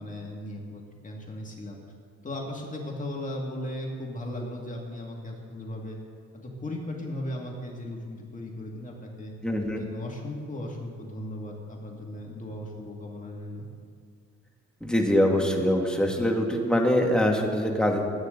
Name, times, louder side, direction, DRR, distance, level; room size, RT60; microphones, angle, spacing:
voice 1, 0.0-1.8 2.2-6.0 6.3-9.3 9.7-13.7, left 1 dB, 25° left, -1 dB, 2.3 m, -37 dB
voice 2, 9.4-9.9 14.8-18.0, equal, 5° left, 0 dB, 2.1 m, -23 dB
20.5 x 9.4 x 3.9 m, 2.1 s
cardioid pair, 90°, 30 cm